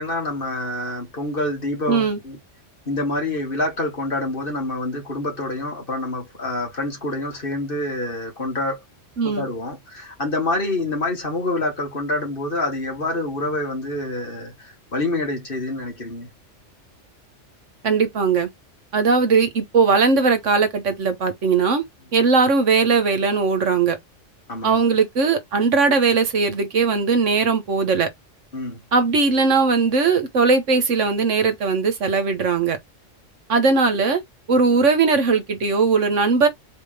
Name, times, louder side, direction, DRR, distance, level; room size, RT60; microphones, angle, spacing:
voice 1, 0.0-2.4 2.9-8.8 9.2-16.3 24.5-24.8 28.5-28.8, left 2 dB, 45° left, 2.3 m, -27 dB
voice 2, 1.9-2.2 9.2-9.5 17.8-18.5 18.9-21.8 22.1-24.0 24.6-28.1 28.9-32.8 33.5-34.2 34.5-36.5, right 4 dB, 75° right, 1.5 m, -19 dB
4.2 x 3.7 x 3.3 m
omnidirectional pair, 1.3 m